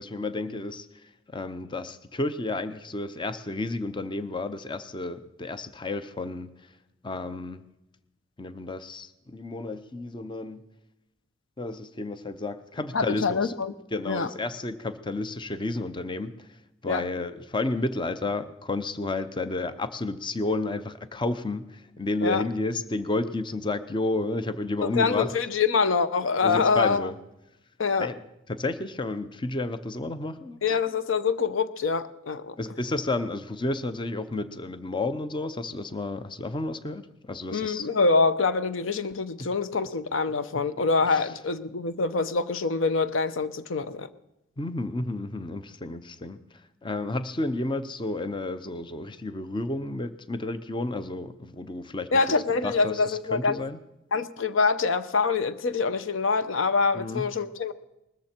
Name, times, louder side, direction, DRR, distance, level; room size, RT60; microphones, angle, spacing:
voice 1, 0.0-6.7 7.0-7.7 8.4-10.7 11.6-13.5 13.9-25.3 26.4-27.2 28.0-30.8 32.6-37.9 39.4-39.5 40.5-40.6 41.1-41.3 44.6-52.2 52.6-53.8 56.9-57.3, left 2 dB, 25° left, 0.7 m, -31 dB
voice 2, 12.9-13.7 14.1-14.3 16.8-17.0 22.2-22.4 24.8-27.1 27.8-28.1 30.6-32.5 37.5-44.1 52.1-53.6 54.1-57.7, left 4 dB, 80° left, 0.8 m, -25 dB
20.0 x 14.0 x 4.4 m
head